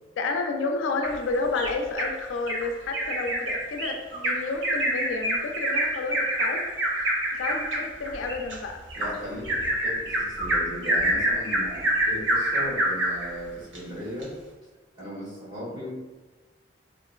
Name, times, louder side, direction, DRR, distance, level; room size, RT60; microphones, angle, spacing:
voice 1, 0.2-6.6 7.0-7.1 7.4-8.8, left 3 dB, 90° left, 4 dB, 0.4 m, -30 dB
Bird vocalization bird call bird song, 1.0-2.1 2.5-2.6 2.9-13.3 13.7-13.8 14.2-14.3, right 1 dB, 75° right, 0.6 m, -26 dB
voice 2, 8.9-14.3 15.0-15.9, equal, 25° right, -10 dB, 1.4 m, -37 dB
2.9 x 2.4 x 2.4 m, 1.3 s
head